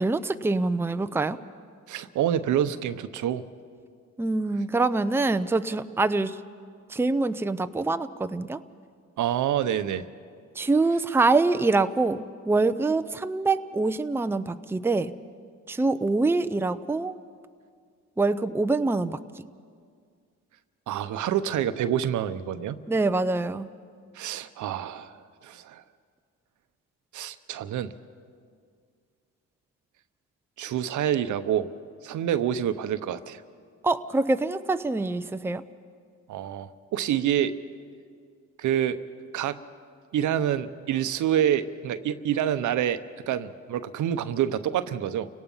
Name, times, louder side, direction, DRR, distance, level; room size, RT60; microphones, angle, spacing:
voice 1, 0.0-1.4 4.2-6.4 6.9-8.6 10.6-15.1 15.7-17.2 18.2-19.2 22.9-23.7 33.8-35.6, right 3 dB, 10° right, 10 dB, 0.6 m, -25 dB
voice 2, 1.9-3.4 9.2-10.1 20.9-22.8 24.1-25.2 25.4-25.8 27.1-27.9 30.6-31.7 32.0-33.4 36.3-37.5 38.6-39.0 39.3-39.6 40.1-43.0 43.3-45.3, right 10 dB, 75° right, 11 dB, 0.9 m, -27 dB
29.5 x 18.0 x 5.6 m, 2.1 s
cardioid pair, 90°, 30 cm